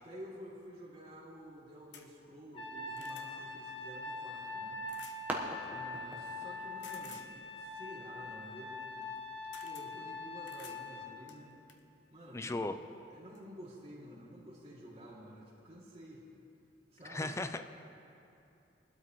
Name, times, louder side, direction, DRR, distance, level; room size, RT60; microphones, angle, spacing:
voice 1, 0.0-4.8 5.7-7.2 7.6-9.0 9.6-11.5 12.1-12.6 13.1-16.2 16.9-17.4, equal, 35° right, -5 dB, 2.6 m, -51 dB
sound 1, 1.9-2.1 2.6-3.3 4.9-5.2 6.8-7.3 9.0-9.2 9.5-9.9 10.5-10.8 11.3-11.8 12.9-13.0 13.3-13.4, left 7 dB, 85° left, 0.9 m, -53 dB
Trumpet, 2.5-11.1, left 2 dB, 30° left, 1.0 m, -43 dB
sound 2, 4.4-9.5, right 1 dB, 10° right, 1.1 m, -47 dB
voice 2, 12.3-12.7 17.1-17.6, left 2 dB, 15° left, 9 dB, 0.4 m, -36 dB
20.5 x 12.5 x 3.1 m, 2.7 s
head